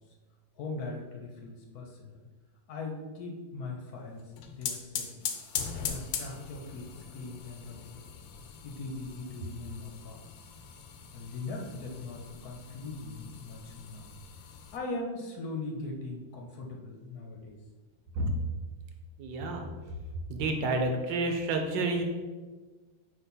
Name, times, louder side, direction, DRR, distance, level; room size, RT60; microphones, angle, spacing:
voice 1, 0.6-2.2 2.7-5.1 5.9-8.1 8.6-10.5 11.1-14.1 14.7-17.6, left 3 dB, 60° left, 1 dB, 1.2 m, -40 dB
sound 1, 4.2-14.8, left 7 dB, 80° left, 1.4 m, -41 dB
voice 2, 19.2-19.7 20.3-22.0, right 2 dB, 75° right, 3 dB, 1.4 m, -29 dB
4.8 x 3.6 x 5.4 m, 1.3 s
omnidirectional pair, 2.0 m